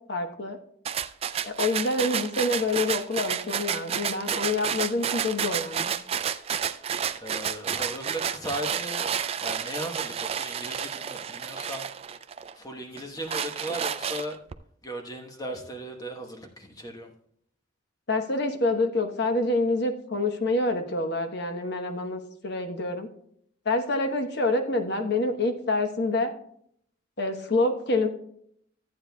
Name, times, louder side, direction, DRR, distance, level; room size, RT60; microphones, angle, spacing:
voice 1, 0.1-0.6 1.4-5.9 18.1-23.1 23.6-26.3 27.2-28.1, left 2 dB, 60° left, 6 dB, 1.0 m, -27 dB
sound 1, 0.9-12.5 13.0-14.5, right 8 dB, 30° right, 0.3 m, -31 dB
voice 2, 7.2-9.1 9.4-11.9 12.5-14.4 14.8-17.1, equal, 20° left, 3 dB, 1.1 m, -37 dB
14.0 x 8.7 x 2.2 m, 0.68 s
head